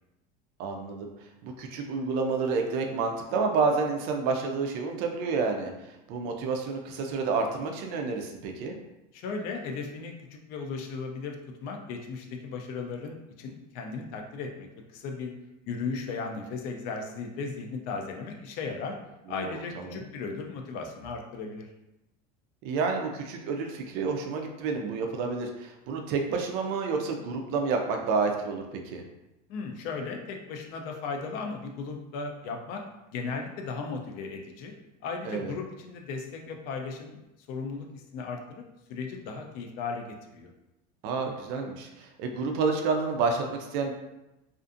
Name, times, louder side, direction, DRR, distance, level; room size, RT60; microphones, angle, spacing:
voice 1, 0.6-1.1 1.4-5.7 6.1-8.8 19.3-19.6 19.9-20.0 22.6-28.7 28.9-29.0 35.2-35.5 41.0-43.5 43.7-43.9, right 4 dB, 50° right, 3 dB, 0.4 m, -29 dB
voice 2, 9.1-14.7 14.9-15.3 15.7-18.9 19.3-21.7 29.5-32.8 33.1-34.7 35.0-37.2 37.5-38.6 38.9-40.5, left 4 dB, 50° left, 3 dB, 0.4 m, -36 dB
2.5 x 2.4 x 2.4 m, 0.94 s
cardioid pair, 165°, 20 cm